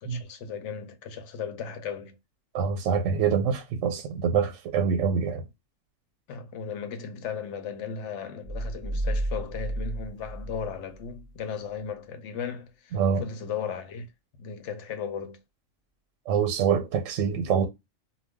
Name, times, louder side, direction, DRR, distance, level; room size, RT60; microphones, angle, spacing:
voice 1, 0.0-2.2 6.3-14.1 14.4-15.4, left 6 dB, 70° left, 0.9 m, -36 dB
voice 2, 2.5-5.5 12.9-13.2 16.3-17.7, right 7 dB, 85° right, 1.0 m, -25 dB
sound 1, 8.4-11.3, right 1 dB, 40° right, 0.7 m, -32 dB
2.3 x 2.1 x 3.5 m
omnidirectional pair, 1.3 m